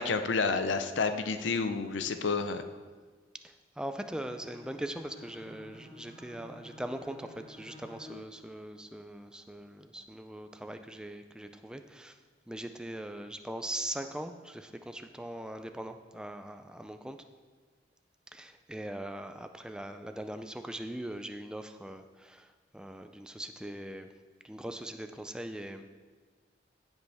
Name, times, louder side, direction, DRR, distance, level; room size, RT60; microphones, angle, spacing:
voice 1, 0.0-2.6, left 4 dB, 80° left, 9 dB, 0.6 m, -30 dB
voice 2, 3.4-12.2 12.5-17.2 18.3-24.1 24.4-25.8, right 1 dB, 5° right, 7 dB, 0.4 m, -41 dB
Bowed string instrument, 4.1-8.3, left 1 dB, 20° left, 3.0 m, -51 dB
15.5 x 5.3 x 3.4 m, 1.5 s
head